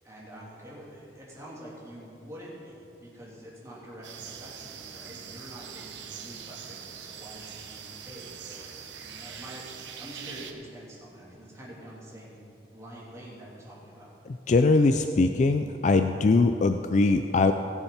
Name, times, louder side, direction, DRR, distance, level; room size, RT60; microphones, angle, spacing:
voice 1, 0.0-14.1, equal, 15° right, -6 dB, 3.0 m, -46 dB
sound 1, 4.0-10.5, right 7 dB, 80° right, 1.0 m, -43 dB
voice 2, 14.5-17.5, left 3 dB, 40° left, 8 dB, 0.4 m, -21 dB
17.0 x 7.1 x 5.8 m, 2.9 s
head